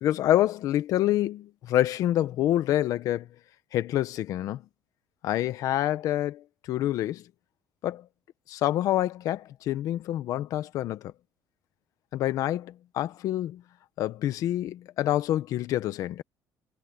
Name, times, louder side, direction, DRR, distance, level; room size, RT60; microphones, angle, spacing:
voice 1, 0.0-3.3 3.7-4.6 5.2-7.2 7.8-8.0 8.5-11.1 12.1-13.6 14.0-16.2, left 13 dB, 55° left, 1.3 m, -27 dB
cardioid pair, 170°, 7 cm